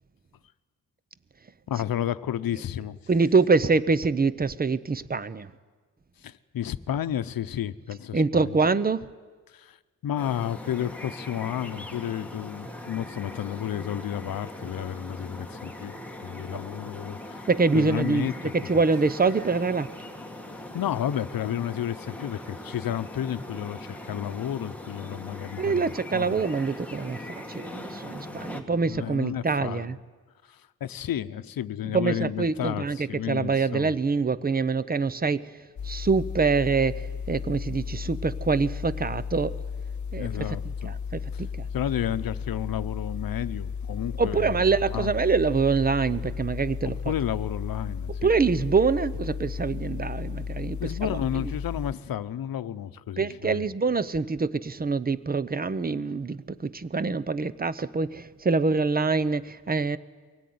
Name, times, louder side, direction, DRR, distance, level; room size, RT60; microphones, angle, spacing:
voice 1, 1.7-3.0 6.2-8.6 9.5-9.8 10.0-15.9 16.2-17.5 17.7-18.5 20.7-26.4 28.2-30.0 30.4-33.9 40.2-40.9 41.3-41.5 41.7-45.1 46.8-48.6 50.8-53.7, left 10 dB, 90° left, 13 dB, 0.8 m, -32 dB
voice 2, 3.1-5.5 8.1-9.0 17.5-19.9 25.6-30.0 31.9-35.4 35.9-36.9 37.3-39.5 40.1-40.5 41.1-41.5 44.2-47.0 48.2-50.8 53.2-60.0, right 4 dB, 25° right, 16 dB, 0.7 m, -25 dB
sound 1, 10.2-28.6, left 1 dB, 5° left, 1.9 m, -41 dB
sound 2, 35.8-51.9, left 6 dB, 60° left, 1.1 m, -34 dB
23.0 x 17.5 x 9.4 m, 1.4 s
wide cardioid pair, 120°, 34 cm